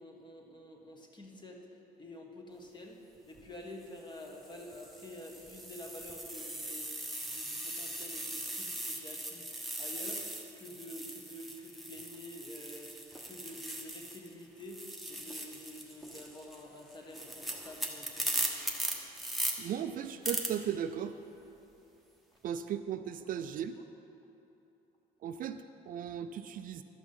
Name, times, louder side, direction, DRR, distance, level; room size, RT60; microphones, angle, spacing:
voice 1, 0.0-1.6 2.0-10.2 10.5-13.0 13.3-18.5 23.2-23.4, left 1 dB, 25° left, 1 dB, 1.5 m, -48 dB
sound 1, 3.2-3.4 4.2-14.3 14.6-19.5 20.2-20.5, right 1 dB, ahead, 1.2 m, -39 dB
voice 2, 19.6-21.1 22.4-23.7 25.2-26.8, right 9 dB, 55° right, 10 dB, 0.4 m, -36 dB
12.5 x 6.1 x 5.6 m, 2.9 s
cardioid pair, 110°, 17 cm